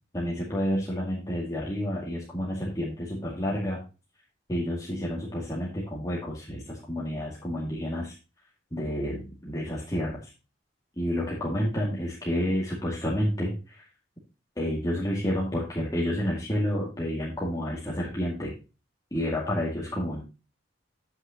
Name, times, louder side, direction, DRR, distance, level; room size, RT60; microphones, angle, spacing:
voice 1, 0.1-3.8 4.5-8.2 8.7-10.3 11.0-13.9 14.6-18.5 19.1-20.2, equal, 20° left, -5 dB, 2.2 m, -30 dB
9.9 x 8.1 x 2.9 m, 0.30 s
head